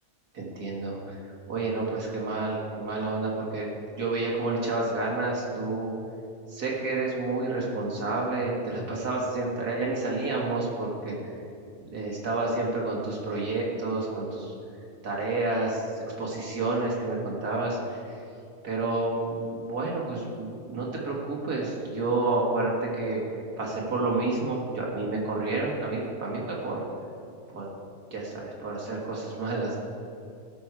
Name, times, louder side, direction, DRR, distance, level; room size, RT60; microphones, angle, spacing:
voice 1, 0.3-1.2 1.5-3.7 3.9-5.9 6.5-11.2 11.9-14.5 15.0-18.0 18.6-23.2 23.6-26.8 27.5-27.7 28.1-29.8, right 2 dB, 90° right, -3 dB, 2.4 m, -29 dB
15.5 x 6.3 x 4.7 m, 2.6 s
omnidirectional pair, 1.6 m